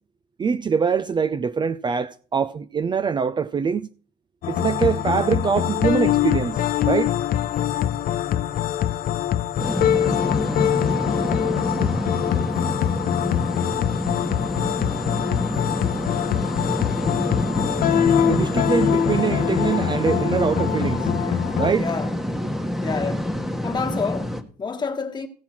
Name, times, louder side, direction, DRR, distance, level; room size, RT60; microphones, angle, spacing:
voice 1, 0.4-3.9 4.5-7.1 18.2-21.1 21.6-21.9, right 6 dB, 25° right, 0.4 m, -23 dB
sound 1, 4.4-21.7, left 10 dB, 60° left, 0.6 m, -23 dB
sound 2, 9.6-24.4, left 1 dB, ahead, 1.2 m, -27 dB
voice 2, 21.3-22.1 22.8-23.4 23.6-25.3, left 5 dB, 25° left, 1.6 m, -29 dB
16.0 x 5.7 x 6.0 m
cardioid pair, 110°, 17 cm